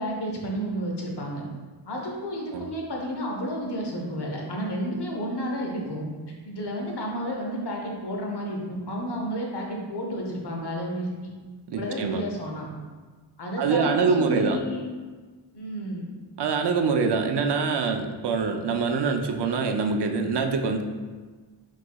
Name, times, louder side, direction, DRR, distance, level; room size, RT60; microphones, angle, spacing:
voice 1, 0.0-1.4 1.9-6.1 6.4-11.3 11.7-12.7 13.4-14.9 15.5-16.1, equal, 60° left, 0 dB, 0.9 m, -31 dB
voice 2, 11.7-12.2 13.6-14.6 16.4-20.8, right 5 dB, 60° right, 6 dB, 0.5 m, -24 dB
4.7 x 3.8 x 2.3 m, 1.4 s
wide cardioid pair, 75°, 46 cm